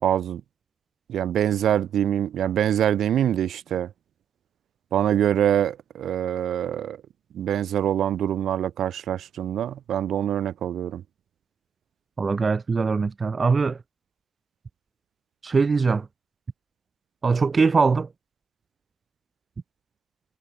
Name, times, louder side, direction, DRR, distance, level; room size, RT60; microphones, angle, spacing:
voice 1, 0.0-0.4 1.1-3.9 4.9-7.0 7.3-11.0, right 10 dB, 85° right, 3.1 m, -24 dB
voice 2, 12.2-13.8 15.4-16.1 17.2-18.1, right 4 dB, 50° right, 1.1 m, -21 dB
supercardioid pair, 45°, 0 cm